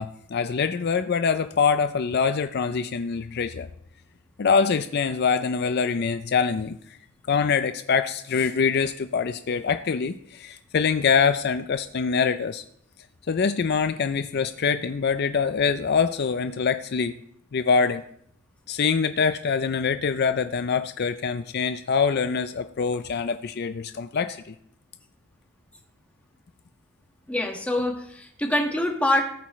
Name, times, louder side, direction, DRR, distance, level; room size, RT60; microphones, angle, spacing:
voice 1, 0.0-3.7 4.4-6.8 7.3-12.6 13.3-17.2 17.5-18.0 18.7-24.5, left 5 dB, 55° left, 10 dB, 0.4 m, -24 dB
voice 2, 27.3-29.2, left 1 dB, 5° left, 2 dB, 1.5 m, -25 dB
18.5 x 8.5 x 3.1 m, 0.70 s
head